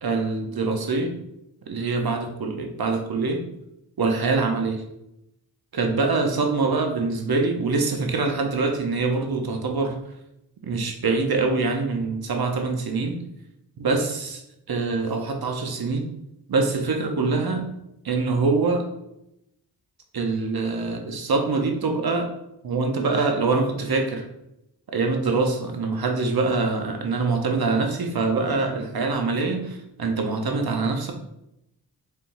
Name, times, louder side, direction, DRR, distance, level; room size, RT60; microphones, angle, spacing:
voice 1, 0.0-1.1 1.7-3.4 4.0-4.8 5.7-9.9 10.6-13.1 13.8-14.4 14.7-16.0 16.5-17.7 18.0-18.8 20.1-22.3 22.6-24.2 24.9-31.1, right 3 dB, 55° right, 3 dB, 0.8 m, -24 dB
4.4 x 3.4 x 2.6 m, 0.84 s
cardioid pair, 65°, 44 cm